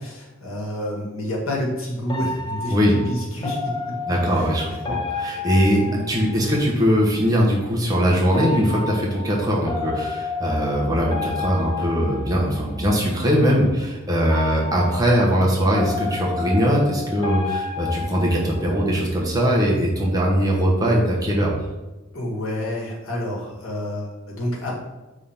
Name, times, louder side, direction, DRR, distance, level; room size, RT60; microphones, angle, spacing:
voice 1, 0.0-3.9 4.3-4.5 4.9-5.0 5.8-6.0 22.1-24.8, left 1 dB, 85° left, -2 dB, 1.7 m, -29 dB
sound 1, 2.1-6.7 8.3-12.9 14.2-18.9, left 4 dB, 20° left, 0.6 m, -31 dB
voice 2, 4.1-5.8 6.1-21.5, equal, 20° right, -3 dB, 1.1 m, -21 dB
5.1 x 3.7 x 5.8 m, 1.1 s
head